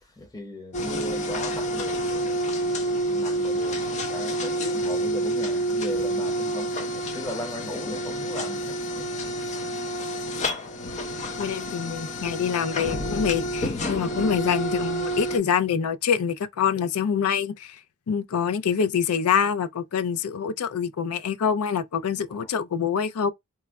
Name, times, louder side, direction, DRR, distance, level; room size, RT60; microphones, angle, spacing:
voice 1, 0.0-9.3 10.5-10.9 22.3-22.5, left 1 dB, 15° left, 0.9 m, -38 dB
sound 1, 0.7-15.4, right 1 dB, 30° left, 0.5 m, -28 dB
voice 2, 11.4-17.8 18.1-23.3, left 7 dB, 80° left, 0.4 m, -25 dB
3.1 x 2.2 x 3.4 m
head